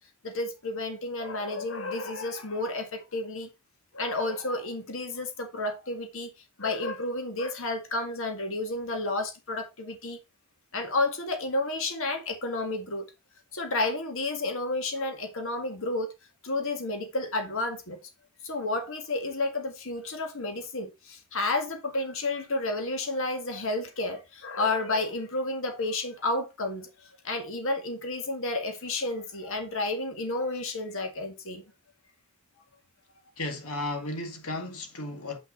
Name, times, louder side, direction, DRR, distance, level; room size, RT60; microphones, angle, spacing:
voice 1, 0.2-3.5 3.9-6.3 6.6-10.2 10.7-13.0 13.5-16.1 16.4-18.0 18.4-31.6, left 2 dB, 65° left, 1.8 m, -31 dB
voice 2, 33.4-35.4, left 2 dB, 80° left, 2.1 m, -34 dB
8.0 x 5.7 x 4.0 m
head